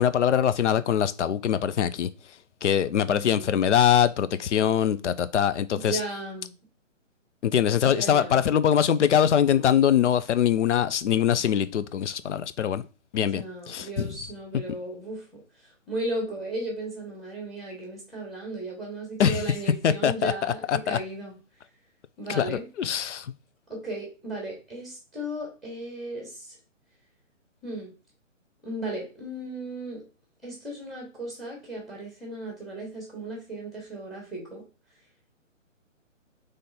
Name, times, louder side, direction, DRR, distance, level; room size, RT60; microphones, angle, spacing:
voice 1, 0.0-2.1 2.6-6.0 7.4-12.9 13.1-14.1 19.2-19.5 19.8-20.3 20.7-21.0 22.3-23.3, left 9 dB, 65° left, 0.5 m, -23 dB
voice 2, 3.0-3.6 5.7-6.5 7.8-8.4 13.1-15.4 15.9-21.3 22.2-22.7 23.7-26.6 27.6-27.9 28.6-30.0 30.4-34.6, right 1 dB, ahead, 1.2 m, -36 dB
3.8 x 3.3 x 4.1 m
hypercardioid pair, 145°, 39 cm